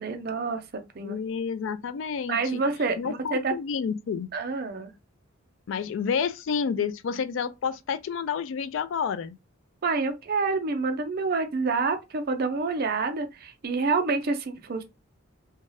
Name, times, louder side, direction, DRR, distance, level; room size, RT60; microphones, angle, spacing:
voice 1, 0.0-1.2 2.3-3.5 4.3-4.9 9.8-14.8, right 4 dB, 45° right, 0.5 m, -28 dB
voice 2, 1.0-2.6 3.0-4.3 5.7-9.4, left 6 dB, 60° left, 0.3 m, -29 dB
2.7 x 2.3 x 3.1 m
head